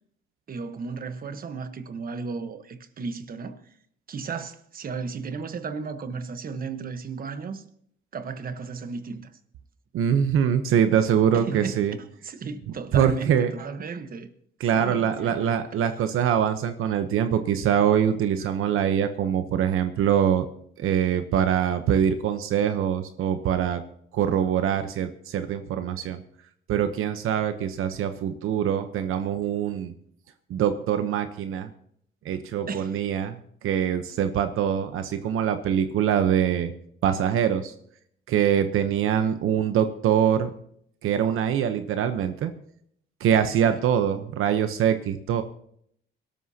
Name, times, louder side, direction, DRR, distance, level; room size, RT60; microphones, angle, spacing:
voice 1, 0.5-3.8 4.1-7.7 8.1-9.3 11.3-11.9 12.2-14.3 14.7-16.0 18.4-18.5 32.7-33.0 43.6-43.8, right 5 dB, 45° right, 1.2 m, -35 dB
voice 2, 9.9-11.9 12.9-13.5 14.6-20.5 20.8-23.8 24.1-26.2 26.7-29.9 30.5-31.7 32.2-36.7 37.0-37.7 38.3-40.5 41.0-42.5 43.2-45.4, right 9 dB, 80° right, 0.9 m, -24 dB
23.5 x 12.5 x 2.8 m
cardioid pair, 125°, 21 cm